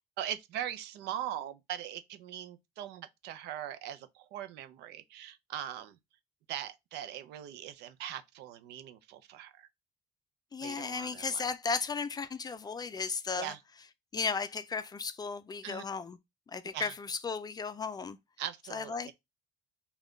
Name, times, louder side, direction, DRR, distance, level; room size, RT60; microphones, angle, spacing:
voice 1, 0.2-6.0 6.5-9.7 10.6-11.5 13.4-13.6 15.6-15.8 16.7-16.9 18.4-19.1, right 11 dB, 85° right, 0.5 m, -41 dB
voice 2, 10.5-13.5 14.1-16.2 16.5-18.2 18.7-19.1, left 5 dB, 25° left, 0.4 m, -35 dB
3.5 x 2.3 x 3.7 m
cardioid pair, 110°, 17 cm